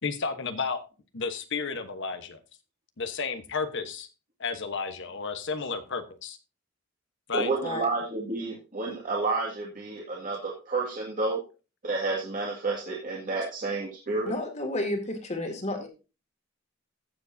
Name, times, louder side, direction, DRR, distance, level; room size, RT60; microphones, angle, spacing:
voice 1, 0.0-0.8 1.1-2.4 3.0-4.1 4.4-6.4 7.3-7.5, left 5 dB, 60° left, 9 dB, 1.1 m, -32 dB
voice 2, 7.3-11.4 11.8-14.3, right 3 dB, 40° right, -3 dB, 2.1 m, -30 dB
voice 3, 14.2-15.9, left 1 dB, 35° left, 4 dB, 2.2 m, -31 dB
15.0 x 7.4 x 2.7 m, 0.31 s
head